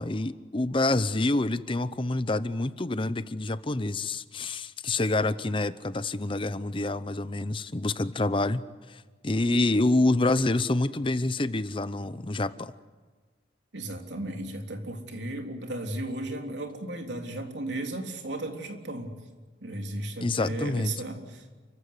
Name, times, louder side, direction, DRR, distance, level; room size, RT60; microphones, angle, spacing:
voice 1, 0.0-8.6 8.9-12.7 20.2-20.9, left 2 dB, 30° left, 14 dB, 0.7 m, -27 dB
voice 2, 13.7-19.2 19.6-21.5, right 1 dB, 80° right, 3 dB, 3.5 m, -35 dB
29.5 x 15.5 x 9.7 m, 1.4 s
head